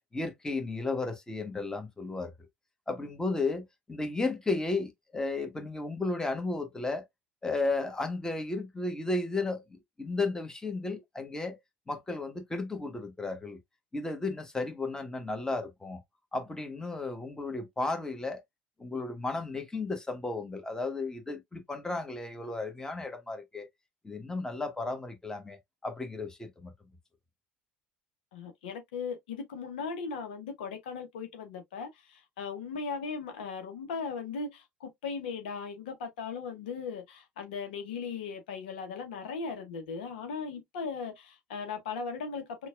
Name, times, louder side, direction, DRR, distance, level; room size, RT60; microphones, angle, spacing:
voice 1, 0.1-2.3 2.9-7.0 7.4-11.6 11.9-13.6 13.9-16.0 16.3-18.4 18.8-23.7 24.0-26.7, left 3 dB, 10° left, 1.2 m, -34 dB
voice 2, 28.3-42.7, left 5 dB, 65° left, 0.9 m, -38 dB
6.0 x 2.3 x 2.4 m
figure-of-eight pair, 65°, 5 cm